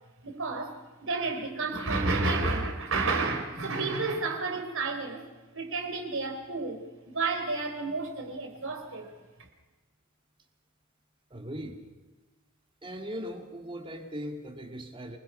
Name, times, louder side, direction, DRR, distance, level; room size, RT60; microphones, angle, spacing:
voice 1, 0.2-5.2 5.5-9.1 9.4-9.5, right 3 dB, 65° right, 3 dB, 3.6 m, -31 dB
voice 2, 11.3-11.8 12.8-15.2, equal, 25° right, 4 dB, 2.4 m, -39 dB
27.0 x 20.5 x 5.6 m, 1.2 s
head